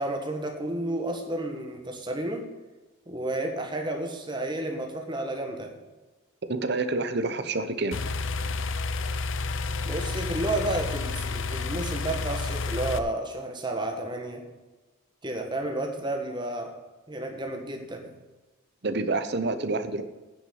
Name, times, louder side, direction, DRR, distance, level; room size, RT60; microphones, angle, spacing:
voice 1, 0.0-2.5 3.1-5.7 9.9-14.5 15.2-16.8 17.1-18.1, right 1 dB, 20° right, 3 dB, 1.6 m, -31 dB
voice 2, 6.5-8.0 18.8-20.0, right 3 dB, 50° right, 10 dB, 0.9 m, -28 dB
sound 1, 7.9-13.0, left 4 dB, 65° left, 0.6 m, -30 dB
10.0 x 6.0 x 8.6 m, 1.2 s
head